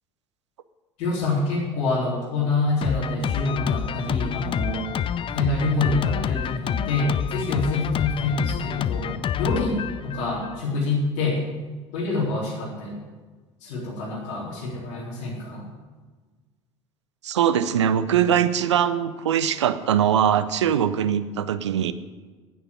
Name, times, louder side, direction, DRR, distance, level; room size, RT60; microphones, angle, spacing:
voice 1, 1.0-4.9 5.3-9.1 9.4-11.4 11.9-13.0 13.6-15.6, left 3 dB, 60° left, -5 dB, 3.9 m, -26 dB
Drum kit, 2.8-10.6, left 9 dB, 35° left, 0.6 m, -28 dB
voice 2, 17.2-21.9, right 9 dB, 80° right, 13 dB, 0.6 m, -22 dB
9.6 x 9.5 x 9.5 m, 1.4 s
figure-of-eight pair, 65°, 15 cm